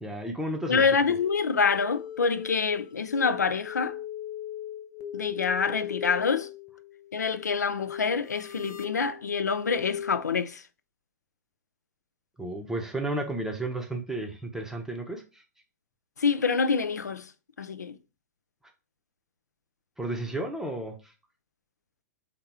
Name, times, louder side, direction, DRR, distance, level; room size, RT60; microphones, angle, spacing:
voice 1, 0.0-0.8 12.4-15.2 20.0-21.0, right 1 dB, 5° right, 0.7 m, -32 dB
voice 2, 0.7-4.0 5.1-6.5 7.1-10.6 16.2-17.3 17.6-18.0, left 5 dB, 80° left, 0.4 m, -26 dB
sound 1, 1.0-10.2, left 10 dB, 35° left, 0.6 m, -40 dB
3.6 x 2.9 x 3.5 m
figure-of-eight pair, 105°, 9 cm